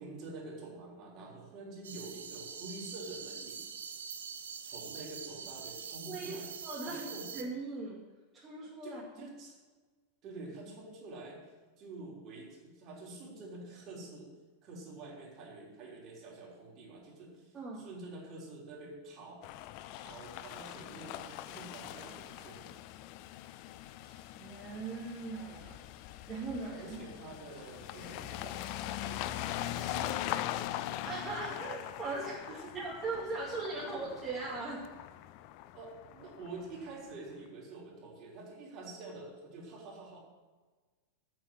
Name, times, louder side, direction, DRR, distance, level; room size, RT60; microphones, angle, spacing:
voice 1, 0.0-3.6 4.6-6.5 6.8-7.3 8.8-9.6 10.2-11.4 11.8-14.3 14.6-19.4 20.0-22.7 26.6-30.2 32.5-32.9 33.8-34.0 35.7-40.2, right 2 dB, 35° right, -3 dB, 3.9 m, -47 dB
sound 1, 1.8-7.4, right 7 dB, 65° right, 0.9 m, -44 dB
voice 2, 6.1-7.1 7.3-8.1 8.3-9.3 17.5-17.9 24.0-25.8 26.3-27.0 31.0-34.8, right 3 dB, 20° right, -6 dB, 2.3 m, -40 dB
sound 2, 19.4-37.1, left 13 dB, 45° left, 0.5 m, -42 dB
8.8 x 7.8 x 9.0 m, 1.3 s
figure-of-eight pair, 90°, 0 cm